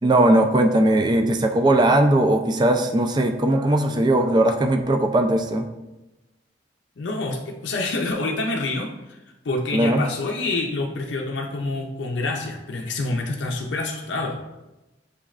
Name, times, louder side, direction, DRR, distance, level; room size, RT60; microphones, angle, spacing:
voice 1, 0.0-5.7 9.7-10.0, right 1 dB, 25° right, 5 dB, 0.3 m, -19 dB
voice 2, 7.0-14.4, left 2 dB, 85° left, 1 dB, 0.5 m, -27 dB
6.6 x 3.1 x 2.4 m, 1.0 s
head